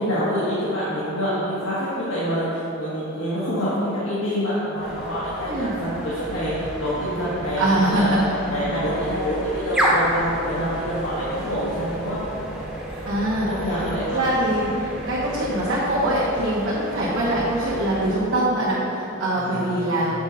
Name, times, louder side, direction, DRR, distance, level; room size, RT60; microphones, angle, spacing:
voice 1, 0.0-12.2 12.8-13.0 13.5-14.2 17.3-17.4 19.3-20.0, equal, 85° left, -10 dB, 1.4 m, -26 dB
sound 1, 4.8-18.2, equal, 5° right, 0.9 m, -31 dB
voice 2, 7.6-8.2 13.1-13.7 14.1-20.2, right 1 dB, 65° right, -9 dB, 1.1 m, -23 dB
7.0 x 5.2 x 3.9 m, 2.9 s
head